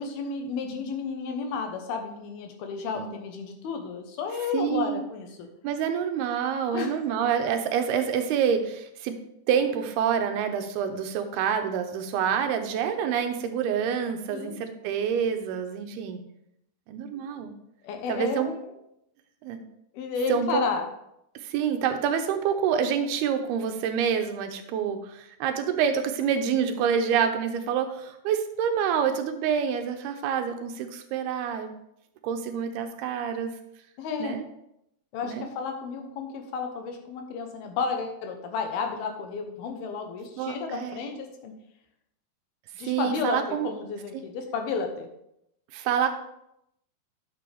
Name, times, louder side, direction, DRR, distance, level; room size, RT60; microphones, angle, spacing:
voice 1, 0.0-5.5 6.7-7.0 14.3-14.6 17.8-18.7 19.9-20.9 34.0-34.4 35.1-41.6 42.8-45.1, left 5 dB, 75° left, 4 dB, 2.8 m, -32 dB
voice 2, 4.5-5.0 5.6-9.2 9.5-16.2 16.9-17.5 18.1-18.5 19.4-19.6 20.3-20.6 21.4-31.7 32.2-33.5 34.2-34.4 35.2-35.5 40.4-41.1 42.8-43.7 44.1-44.2 45.7-46.1, right 7 dB, 85° right, 6 dB, 2.7 m, -27 dB
11.0 x 6.7 x 3.4 m, 0.79 s
omnidirectional pair, 4.6 m